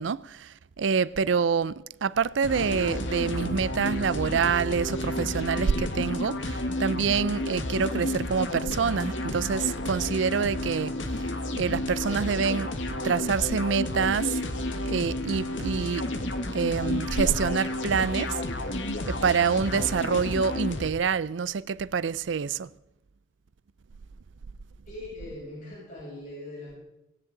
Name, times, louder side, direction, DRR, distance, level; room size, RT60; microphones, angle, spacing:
voice 1, 0.0-10.9 11.6-12.7 13.0-14.4 14.9-16.1 16.5-18.4 19.1-22.7, right 6 dB, 80° right, 0.5 m, -26 dB
sound 1, 2.4-20.9, left 1 dB, 85° left, 1.6 m, -31 dB
voice 2, 24.9-26.8, left 1 dB, 45° left, 7.4 m, -41 dB
18.5 x 17.5 x 3.9 m
head